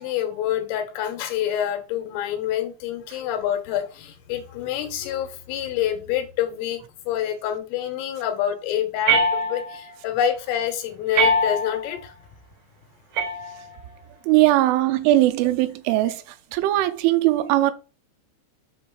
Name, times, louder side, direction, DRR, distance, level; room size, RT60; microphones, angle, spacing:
voice 1, 0.0-6.8 7.1-12.1, left 10 dB, 85° left, 3.9 m, -27 dB
sound 1, 9.1-9.9 11.1-11.9 13.1-14.0, right 1 dB, 65° right, 3.3 m, -23 dB
voice 2, 14.3-16.2 16.5-17.7, right 16 dB, 85° right, 3.1 m, -19 dB
7.9 x 3.1 x 6.3 m
omnidirectional pair, 5.7 m